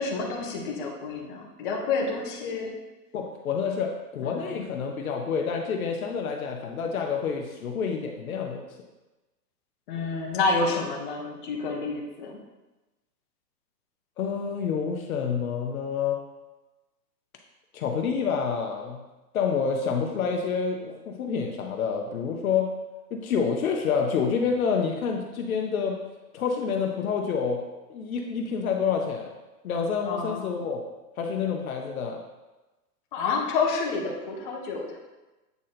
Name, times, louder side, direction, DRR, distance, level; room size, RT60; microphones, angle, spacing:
voice 1, 0.0-2.7 4.2-4.6 9.9-12.4 30.0-30.5 33.1-35.0, left 4 dB, 30° left, -1 dB, 1.0 m, -29 dB
voice 2, 3.1-8.6 14.2-16.2 17.7-19.0 19.3-22.7 23.1-26.0 26.3-27.6 27.9-29.3 29.6-30.8 31.2-32.2, left 6 dB, 55° left, 2 dB, 0.9 m, -28 dB
8.3 x 3.8 x 4.2 m, 1.1 s
hypercardioid pair, 160°, 49 cm